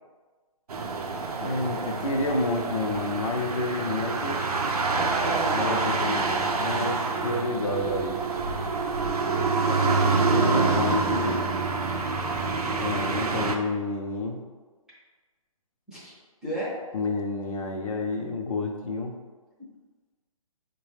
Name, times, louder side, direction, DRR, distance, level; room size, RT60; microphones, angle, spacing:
sound 1, 0.7-13.6, right 4 dB, 85° right, 0.5 m, -27 dB
voice 1, 1.4-4.5 5.5-8.2 9.8-11.5 12.7-14.4 16.9-19.1, left 2 dB, 65° left, 1 dB, 0.6 m, -29 dB
voice 2, 4.9-6.1 9.5-11.4 15.9-16.1 16.4-16.8, left 1 dB, 5° right, -10 dB, 0.6 m, -33 dB
4.7 x 2.2 x 3.2 m, 1.4 s
hypercardioid pair, 150°, 19 cm